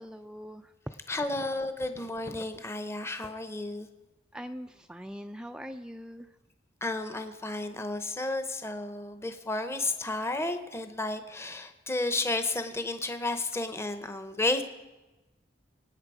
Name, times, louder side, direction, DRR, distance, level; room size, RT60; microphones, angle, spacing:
voice 1, 0.0-1.0 1.3-1.5 4.3-6.3, equal, 5° right, 7 dB, 0.4 m, -42 dB
voice 2, 1.1-3.9 6.8-14.6, left 2 dB, 15° left, 8 dB, 0.8 m, -32 dB
25.0 x 9.0 x 4.9 m, 1.1 s
head